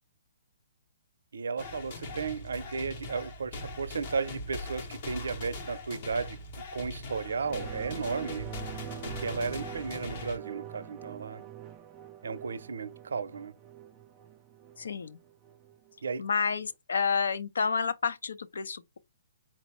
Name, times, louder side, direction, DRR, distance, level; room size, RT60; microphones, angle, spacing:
voice 1, 1.3-6.4 6.7-8.5 9.0-11.4 12.2-13.5 16.0-16.2, right 5 dB, 80° right, 0.6 m, -34 dB
sound 1, 1.6-10.4, left 2 dB, 30° left, 0.7 m, -41 dB
sound 2, 7.2-16.2 16.6-16.7, right 9 dB, 15° right, 0.3 m, -45 dB
voice 2, 14.8-15.2 16.2-19.0, left 5 dB, 75° left, 0.5 m, -30 dB
4.3 x 2.0 x 4.3 m
hypercardioid pair, 175°, 0 cm